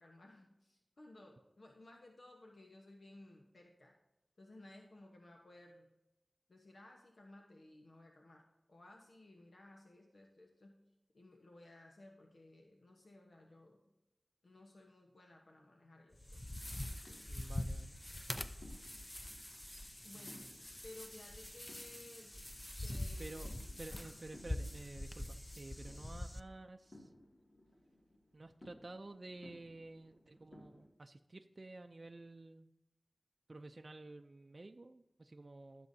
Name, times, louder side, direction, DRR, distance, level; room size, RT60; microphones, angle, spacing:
voice 1, 0.0-3.9 4.4-5.9 6.5-10.7 11.1-13.8 14.4-16.5 20.0-20.5 20.8-22.3 22.8-23.4 23.9-24.1, left 2 dB, 80° left, 1 dB, 1.1 m, -58 dB
sound 1, 16.1-26.4, left 1 dB, 20° left, 0.6 m, -44 dB
sound 2, 16.4-30.9, left 1 dB, 65° left, 2.3 m, -62 dB
voice 2, 17.3-18.0 20.1-20.5 23.2-23.5 23.8-27.1 28.3-32.7 33.5-35.9, right 2 dB, 55° right, 5 dB, 0.5 m, -52 dB
15.5 x 6.9 x 2.7 m, 0.98 s
wide cardioid pair, 50°, 0 cm